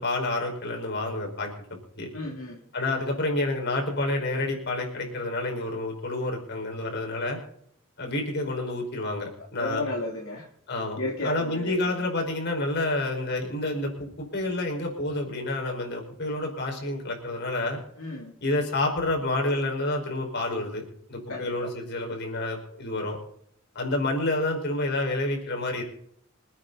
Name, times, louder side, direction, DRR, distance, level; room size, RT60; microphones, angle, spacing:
voice 1, 0.0-1.5 2.0-2.1 2.7-7.4 8.0-9.8 10.7-17.8 18.4-23.2 23.8-25.8, left 2 dB, 55° left, 1 dB, 5.1 m, -29 dB
voice 2, 2.1-2.6 9.6-10.5 11.0-11.8 18.0-18.3 21.3-21.5, left 2 dB, 75° left, -3 dB, 3.1 m, -33 dB
26.5 x 9.3 x 4.1 m, 0.69 s
head